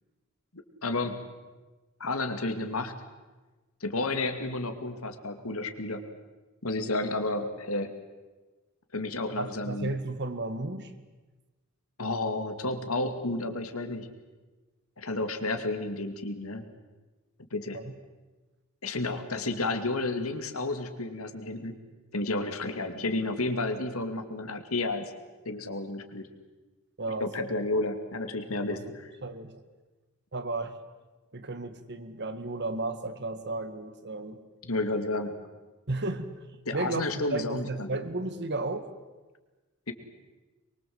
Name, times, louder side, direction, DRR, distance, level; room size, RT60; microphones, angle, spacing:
voice 1, 0.8-1.2 2.0-3.0 3.8-6.0 6.6-7.9 8.9-9.9 12.0-14.1 15.0-16.6 17.5-17.8 18.8-21.7 22.1-25.0 25.5-26.3 27.2-29.1 34.6-35.3 36.7-37.9 39.9-40.0, left 2 dB, 80° left, 7 dB, 2.6 m, -31 dB
voice 2, 9.4-10.9 17.7-17.9 19.3-19.4 27.0-27.3 28.7-29.6 30.3-30.8 31.3-34.4 35.9-36.3 36.7-38.9, right 2 dB, 55° right, 10 dB, 1.9 m, -34 dB
24.0 x 23.5 x 8.0 m, 1.2 s
head